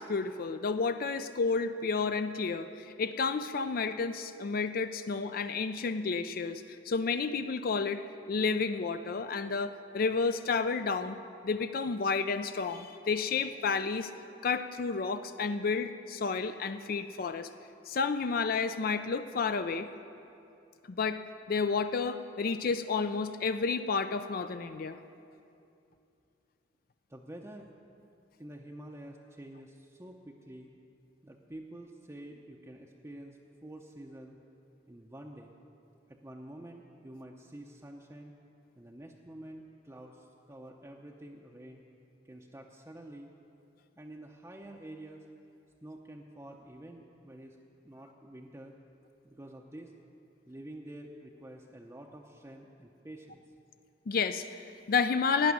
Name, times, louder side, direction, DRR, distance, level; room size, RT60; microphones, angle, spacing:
voice 1, 0.0-11.2 11.4-14.1 14.4-17.5 17.9-19.9 20.9-21.2 21.5-25.0 54.1-55.5, left 4 dB, 55° left, 10 dB, 0.4 m, -31 dB
voice 2, 27.1-27.7 28.4-30.7 31.2-34.4 34.9-35.5 36.1-38.3 38.8-41.8 42.2-43.3 44.0-45.3 45.8-47.6 47.8-48.7 49.2-49.9 50.5-53.4, right 1 dB, 15° right, -1 dB, 0.6 m, -48 dB
16.5 x 6.0 x 9.6 m, 2.6 s
head